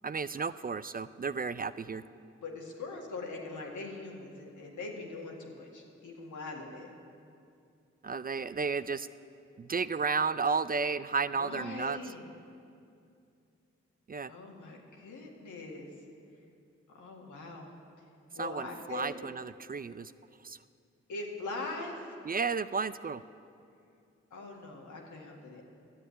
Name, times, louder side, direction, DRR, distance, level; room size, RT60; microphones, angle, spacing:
voice 1, 0.0-2.0 8.0-9.1 9.6-12.0 14.1-14.3 18.4-20.1 20.4-20.6 22.3-23.2, right 5 dB, 30° right, 14 dB, 0.4 m, -33 dB
voice 2, 2.4-6.9 11.3-12.3 14.3-15.9 16.9-17.7 18.0-18.1 18.3-19.2 21.1-22.2 24.3-25.6, left 3 dB, 85° left, -1 dB, 1.9 m, -42 dB
11.0 x 7.8 x 9.6 m, 2.5 s
supercardioid pair, 40°, 29 cm